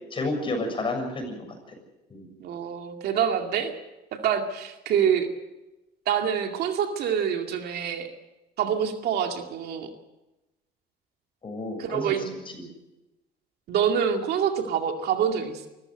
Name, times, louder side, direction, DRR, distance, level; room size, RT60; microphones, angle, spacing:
voice 1, 0.1-1.8 2.1-2.4 11.4-12.7, left 2 dB, 30° left, 4 dB, 7.0 m, -31 dB
voice 2, 2.4-3.7 4.1-5.3 6.1-8.1 8.6-9.9 11.8-12.4 13.7-15.7, right 8 dB, 70° right, 4 dB, 2.3 m, -26 dB
25.0 x 14.5 x 8.0 m, 1.0 s
cardioid pair, 110°, 17 cm